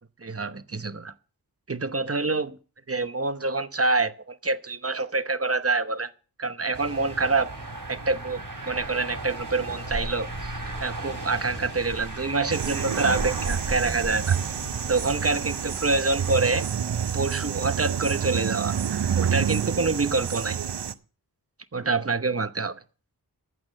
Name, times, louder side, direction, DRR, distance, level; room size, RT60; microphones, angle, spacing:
voice 1, 0.2-1.1 1.7-2.6 2.9-6.1 6.4-7.5 7.9-10.5 10.8-14.4 14.9-16.7 17.1-18.8 19.2-20.6 21.7-22.8, right 3 dB, 35° right, 0.9 m, -26 dB
sound 1, 6.7-16.7, right 2 dB, 55° right, 4.2 m, -35 dB
sound 2, 12.5-20.9, right 8 dB, 85° right, 0.7 m, -28 dB
14.5 x 6.1 x 7.5 m
wide cardioid pair, 55°, 40 cm